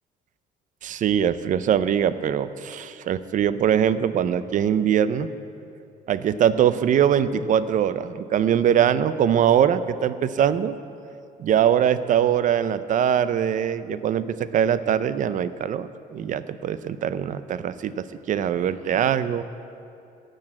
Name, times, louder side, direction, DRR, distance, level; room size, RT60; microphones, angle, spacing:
voice 1, 0.8-5.3 6.1-10.8 11.4-19.4, right 9 dB, 50° right, 14 dB, 0.6 m, -22 dB
17.0 x 6.5 x 7.6 m, 2.6 s
cardioid pair, 110°, 17 cm